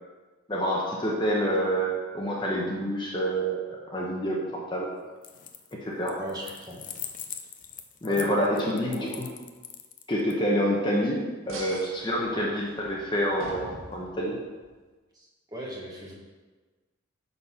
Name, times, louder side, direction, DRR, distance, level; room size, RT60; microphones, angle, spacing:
voice 1, 0.5-4.9 5.7-6.2 8.0-9.3 10.1-14.4, equal, 20° left, -3 dB, 1.0 m, -27 dB
sound 1, 5.2-5.7 6.1-10.3, left 9 dB, 40° left, 0.6 m, -41 dB
voice 2, 6.2-6.8 8.0-9.1 12.3-12.5 15.1-16.1, right 1 dB, 20° right, -4 dB, 1.6 m, -38 dB
sound 2, 11.5-14.7, right 2 dB, 90° right, 1.6 m, -45 dB
9.5 x 4.3 x 5.7 m, 1.3 s
head